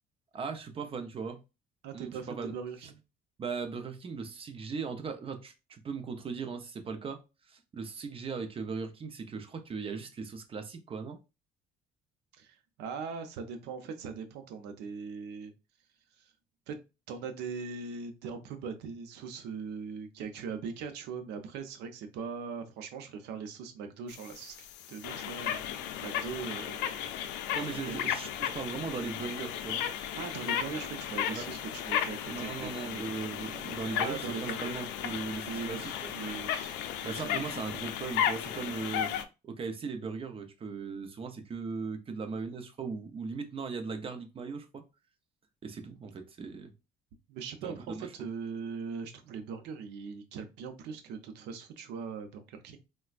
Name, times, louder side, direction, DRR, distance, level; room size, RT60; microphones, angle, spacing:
voice 1, 0.3-1.4 1.9-2.5 3.4-7.2 7.5-11.2 27.5-29.8 31.3-31.5 32.3-36.1 37.0-39.1 39.4-44.8 45.6-46.7 47.6-48.1, right 5 dB, 35° right, 0.6 m, -38 dB
voice 2, 1.8-3.0 12.4-15.5 16.2-16.3 16.7-16.8 17.1-25.6 26.0-27.0 27.7-28.1 30.1-33.0 33.4-33.6 33.9-34.8 35.3-37.5 47.3-52.8, right 5 dB, 85° right, 0.6 m, -40 dB
sound 1, 24.1-39.2, left 10 dB, 90° left, 0.4 m, -35 dB
4.1 x 2.2 x 2.4 m
cardioid pair, 110°, 17 cm